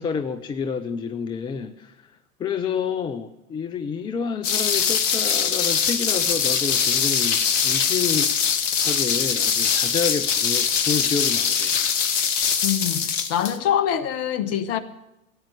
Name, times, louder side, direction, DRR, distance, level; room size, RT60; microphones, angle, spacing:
voice 1, 0.0-2.1 2.4-8.5 8.8-11.9, left 6 dB, 10° left, 0.5 m, -29 dB
sound 1, 4.4-13.6, left 7 dB, 60° left, 1.6 m, -22 dB
voice 2, 12.6-14.8, left 9 dB, 35° left, 1.4 m, -24 dB
15.5 x 8.8 x 9.8 m
figure-of-eight pair, 100°, 42 cm